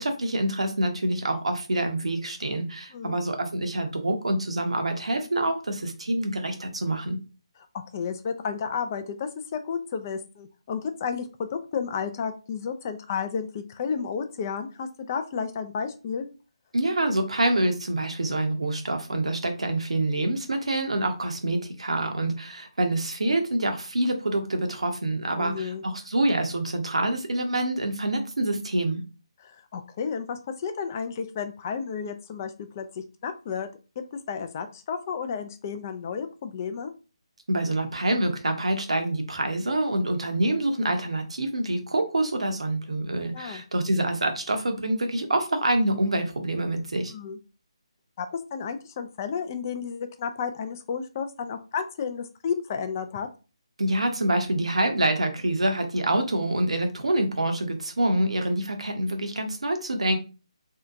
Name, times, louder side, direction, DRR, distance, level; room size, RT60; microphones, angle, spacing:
voice 1, 0.0-7.2 16.7-29.0 37.5-47.1 53.8-60.2, right 1 dB, 80° right, 5 dB, 0.7 m, -26 dB
voice 2, 7.9-16.3 25.4-25.8 29.4-33.7 34.1-36.9 43.3-43.6 47.1-47.4 48.2-53.3, left 6 dB, 30° left, 8 dB, 0.3 m, -32 dB
2.7 x 2.2 x 2.4 m, 0.33 s
figure-of-eight pair, 155°, 3 cm